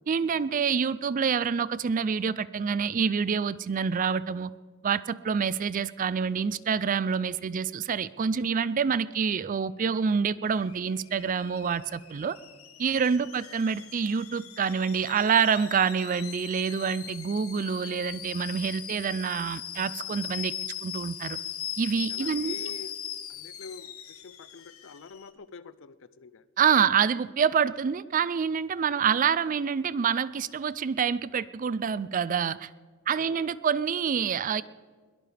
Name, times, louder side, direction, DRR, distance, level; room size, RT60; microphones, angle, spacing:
voice 1, 0.1-4.5 4.8-12.4 12.8-20.5 20.8-21.4 21.8-22.5 26.6-32.7 33.1-34.6, right 6 dB, 40° right, 17 dB, 0.4 m, -27 dB
Alarm / Boiling, 10.5-25.3, left 10 dB, 85° left, 1.3 m, -40 dB
voice 2, 22.1-23.0 23.3-26.4 33.1-33.6, left 4 dB, 60° left, 15 dB, 0.6 m, -46 dB
22.0 x 17.0 x 3.4 m, 1.5 s
head